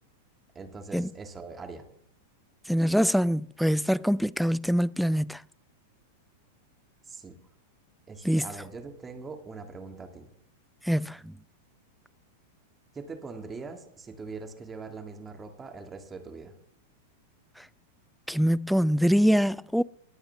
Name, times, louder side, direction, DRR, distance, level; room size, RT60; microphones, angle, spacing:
voice 1, 0.6-1.9 7.1-7.4 8.1-10.3 12.9-16.5, right 4 dB, 20° right, 1.9 m, -42 dB
voice 2, 2.7-5.4 8.2-8.4 10.9-11.3 18.3-19.8, equal, ahead, 0.3 m, -24 dB
19.5 x 8.0 x 3.4 m
hypercardioid pair, 100°, 0 cm